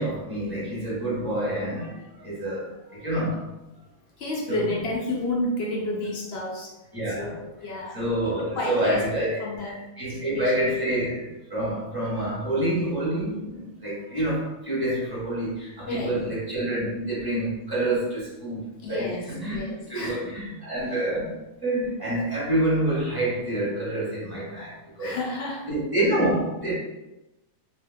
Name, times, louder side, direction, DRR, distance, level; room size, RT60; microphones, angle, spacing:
voice 1, 0.0-3.5 4.5-4.7 6.9-7.4 7.9-19.6 19.9-21.3 21.6-25.2 25.7-26.7, right 1 dB, 15° right, -8 dB, 1.1 m, -27 dB
voice 2, 4.2-6.7 7.2-7.9 8.5-9.8 10.1-10.7 15.9-16.2 18.8-20.3 20.8-20.9 25.0-25.6, left 2 dB, 60° left, -2 dB, 0.7 m, -31 dB
2.6 x 2.1 x 3.4 m, 0.98 s
omnidirectional pair, 1.5 m